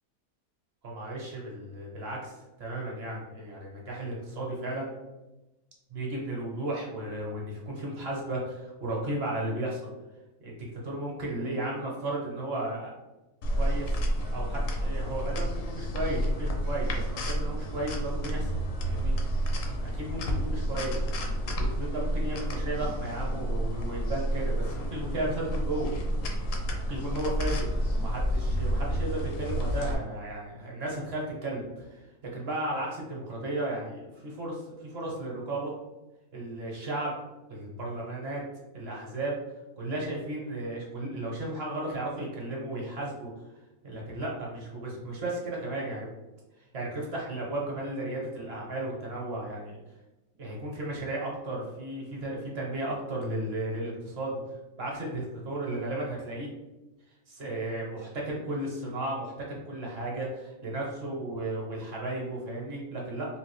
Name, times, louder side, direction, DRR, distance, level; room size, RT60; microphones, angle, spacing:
voice 1, 0.8-4.9 5.9-9.8 10.4-12.9 13.5-14.0 14.3-18.5 18.8-19.1 19.7-21.0 21.5-25.9 26.3-26.4 26.9-35.7 36.3-37.2 37.5-38.4 38.7-39.4 39.8-43.3 43.8-46.1 46.7-49.8 50.4-54.4 54.8-56.5 57.3-63.3, right 1 dB, 50° right, -3 dB, 0.9 m, -34 dB
sound 1, 13.4-29.9, equal, 70° left, 0.9 m, -30 dB
3.3 x 2.4 x 3.0 m, 1.1 s
omnidirectional pair, 1.6 m